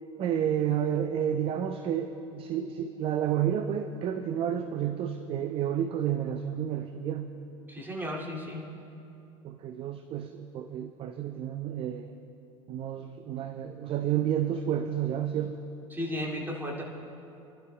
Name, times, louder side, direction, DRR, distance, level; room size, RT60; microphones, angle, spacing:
voice 1, 0.2-7.3 9.4-12.1 12.7-15.6, right 9 dB, 30° right, 9 dB, 0.6 m, -30 dB
voice 2, 7.7-8.7 15.9-16.8, equal, 10° right, -3 dB, 2.5 m, -34 dB
27.5 x 12.0 x 2.3 m, 2.8 s
figure-of-eight pair, 75°, 17 cm